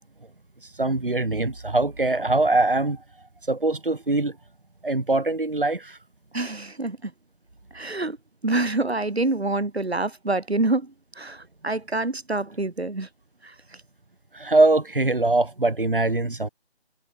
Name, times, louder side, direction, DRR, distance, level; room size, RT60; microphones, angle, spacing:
voice 1, 0.8-3.0 3.5-4.3 4.8-6.0 14.3-16.5, right 2 dB, 50° right, 3.4 m, -22 dB
voice 2, 6.3-7.1 7.7-8.2 8.4-10.9 11.2-13.1, right 2 dB, 70° right, 3.6 m, -26 dB
figure-of-eight pair, 180°, 33 cm